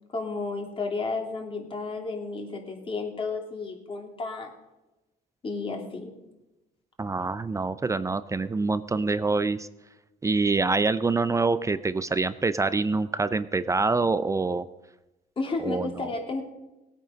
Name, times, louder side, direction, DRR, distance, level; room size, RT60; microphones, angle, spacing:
voice 1, 0.1-4.5 5.4-6.1 15.4-16.4, left 3 dB, 30° left, 2 dB, 2.9 m, -32 dB
voice 2, 7.0-9.7 10.2-14.6 15.6-15.9, right 3 dB, 20° right, 14 dB, 0.5 m, -25 dB
18.0 x 9.1 x 5.2 m, 0.99 s
cardioid pair, 110°, 17 cm